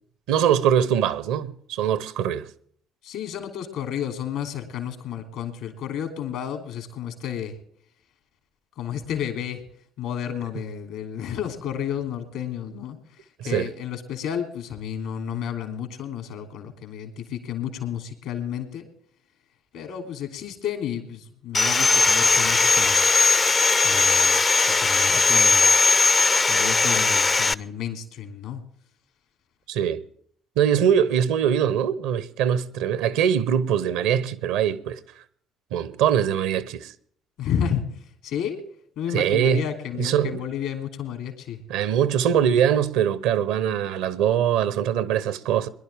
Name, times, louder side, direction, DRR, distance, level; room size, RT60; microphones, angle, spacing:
voice 1, 0.3-2.5 13.4-13.7 29.7-30.0 30.6-35.0 35.7-36.9 39.1-39.6 40.0-40.4 41.7-45.7, right 9 dB, 75° right, 0.8 m, -22 dB
voice 2, 3.0-7.5 8.8-9.6 10.0-18.9 19.7-23.0 23.8-25.7 26.5-28.6 37.4-37.9 38.2-38.6 39.0-41.6, left 9 dB, 75° left, 3.0 m, -31 dB
Sawing, 21.5-27.5, left 4 dB, 30° left, 0.5 m, -19 dB
21.0 x 11.5 x 3.5 m
hypercardioid pair, 55°, 0 cm